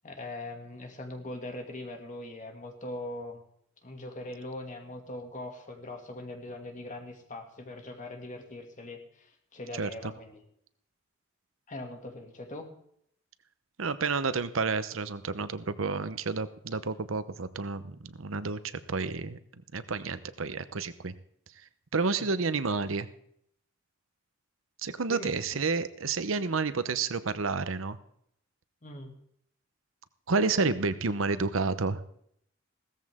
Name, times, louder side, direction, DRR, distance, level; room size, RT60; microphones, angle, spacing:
voice 1, 0.0-3.4 3.8-10.4 11.7-12.7 22.1-22.3 25.1-25.4 28.8-29.1, left 1 dB, 40° left, 4 dB, 2.3 m, -41 dB
voice 2, 9.8-10.1 13.8-19.4 19.7-21.1 21.9-23.1 24.8-28.0 30.3-32.0, right 4 dB, 85° right, 13 dB, 0.9 m, -30 dB
16.5 x 14.0 x 3.7 m, 0.69 s
head